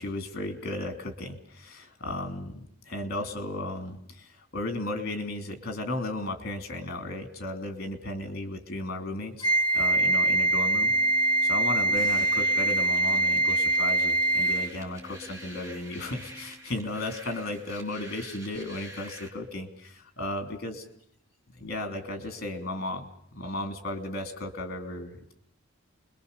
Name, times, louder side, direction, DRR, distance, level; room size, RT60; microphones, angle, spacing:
voice 1, 0.0-10.9 11.4-20.8 21.5-23.1 23.3-25.3, left 1 dB, 45° left, 7 dB, 3.0 m, -35 dB
Wind instrument woodwind instrument, 9.4-14.8, right 2 dB, 20° left, 1.0 m, -24 dB
Organ, 10.6-17.1, left 3 dB, 60° right, 6.2 m, -50 dB
sound 1, 12.0-19.3, right 1 dB, 15° right, 4.8 m, -46 dB
29.0 x 22.0 x 6.8 m, 0.65 s
head